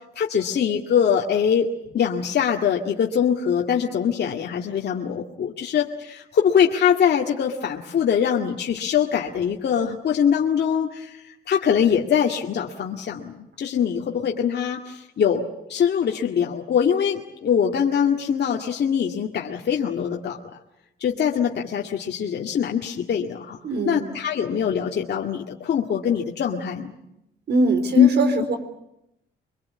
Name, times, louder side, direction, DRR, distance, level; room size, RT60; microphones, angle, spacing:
voice 1, 0.2-1.7 1.9-20.4 21.0-23.6 23.9-26.9 27.9-28.1, left 8 dB, 55° left, 0 dB, 2.1 m, -23 dB
voice 2, 23.6-24.0 27.5-28.6, right 3 dB, 55° right, 9 dB, 4.1 m, -22 dB
24.5 x 22.0 x 8.6 m, 0.83 s
cardioid pair, 90°, 20 cm